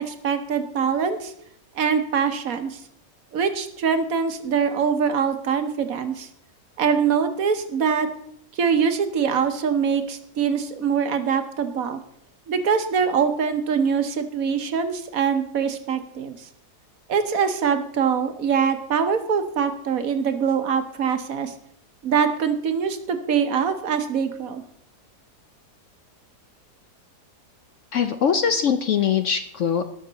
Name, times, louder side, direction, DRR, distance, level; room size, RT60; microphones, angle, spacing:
voice 1, 0.0-1.3 1.7-2.8 3.3-6.3 6.8-8.1 8.5-12.0 12.5-16.5 17.1-21.5 22.0-24.6, right 6 dB, 60° right, 9 dB, 1.3 m, -23 dB
voice 2, 27.9-29.8, left 7 dB, 65° left, 9 dB, 0.8 m, -22 dB
19.0 x 6.4 x 4.0 m, 0.69 s
omnidirectional pair, 1.7 m